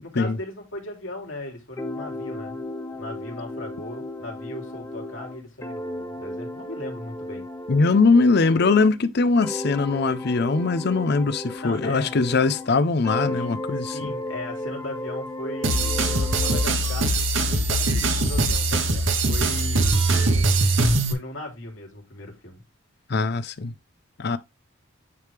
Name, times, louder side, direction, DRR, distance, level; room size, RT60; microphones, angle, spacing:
voice 1, 0.0-7.5 11.6-12.1 13.3-13.5 13.8-20.8 21.1-22.6, left 1 dB, 70° left, 2.9 m, -37 dB
sound 1, 1.8-9.0 9.4-12.7 13.0-16.7, left 1 dB, 15° left, 0.8 m, -34 dB
voice 2, 7.7-14.1 23.1-23.7 24.2-24.4, left 4 dB, 55° left, 0.6 m, -21 dB
sound 2, 15.6-21.1, right 2 dB, 70° right, 1.2 m, -22 dB
9.5 x 3.3 x 3.4 m
head